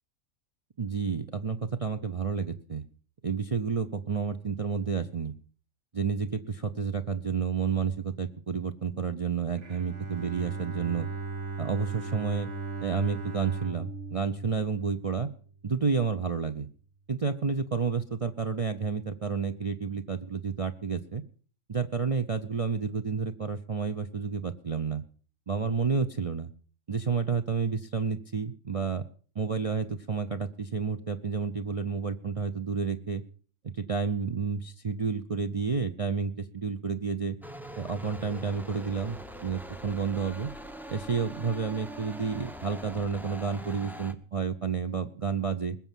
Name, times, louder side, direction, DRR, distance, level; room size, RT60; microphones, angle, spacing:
voice 1, 0.8-2.8 3.2-5.3 5.9-11.1 11.6-12.5 12.8-15.3 15.6-16.7 17.1-21.2 21.7-25.0 25.5-26.5 26.9-29.0 29.3-33.2 33.6-37.4 37.8-40.5 40.9-45.8, right 5 dB, 35° right, 7 dB, 0.6 m, -30 dB
Bowed string instrument, 9.6-15.5, right 4 dB, 55° right, 1.6 m, -37 dB
sound 1, 37.4-44.1, right 1 dB, ahead, 0.8 m, -43 dB
21.0 x 7.2 x 7.4 m, 0.43 s
omnidirectional pair, 1.4 m